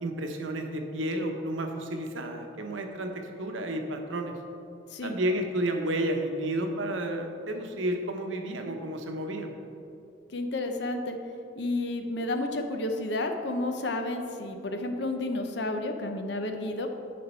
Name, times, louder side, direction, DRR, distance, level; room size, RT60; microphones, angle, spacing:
voice 1, 0.0-4.3 5.0-9.5, right 1 dB, 90° right, 4 dB, 0.9 m, -31 dB
voice 2, 10.3-11.2 11.6-16.9, left 2 dB, 60° left, 5 dB, 0.7 m, -31 dB
9.5 x 5.2 x 4.4 m, 2.8 s
head